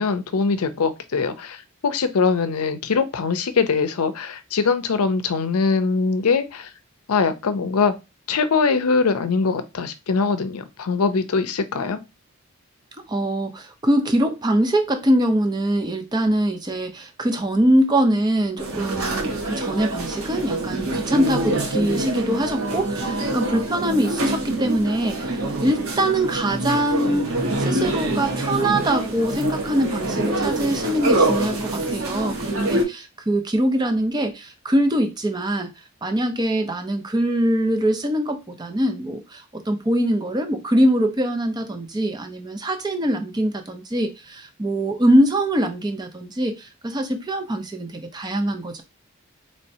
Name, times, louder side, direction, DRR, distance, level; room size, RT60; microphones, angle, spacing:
voice 1, 0.0-1.6 1.8-6.7 7.1-7.9 8.3-12.0, left 4 dB, 90° left, 11 dB, 0.5 m, -22 dB
voice 2, 13.1-35.7 36.0-48.8, right 1 dB, 20° right, 6 dB, 0.5 m, -23 dB
sound 1, 18.6-32.8, right 2 dB, 70° right, 1.2 m, -25 dB
4.2 x 3.2 x 2.7 m, 0.25 s
head